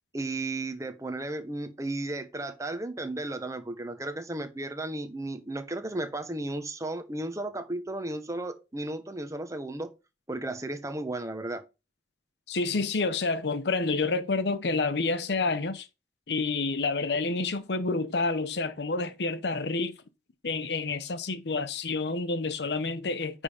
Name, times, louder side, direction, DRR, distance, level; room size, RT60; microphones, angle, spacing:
voice 1, 0.1-9.9 10.3-11.6, right 2 dB, 20° right, 1.0 m, -34 dB
voice 2, 12.5-15.9 16.3-20.0 20.4-23.4, left 3 dB, 70° left, 0.7 m, -29 dB
9.6 x 3.6 x 5.1 m
head